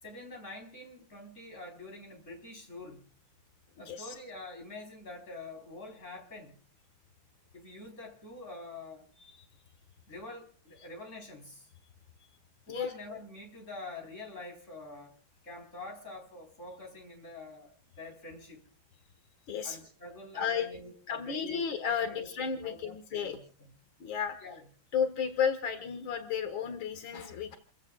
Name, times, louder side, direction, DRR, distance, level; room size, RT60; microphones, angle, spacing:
voice 1, 0.0-3.1 3.8-6.6 7.5-9.1 10.1-11.7 12.7-15.2 15.4-18.6 19.6-21.6 22.0-22.3 22.6-23.7 24.4-24.7, left 2 dB, 35° left, 4.5 m, -46 dB
voice 2, 19.5-19.8 20.4-20.7 21.1-23.4 24.0-24.4 24.9-27.6, left 7 dB, 90° left, 2.4 m, -33 dB
30.0 x 16.0 x 2.4 m
omnidirectional pair, 2.2 m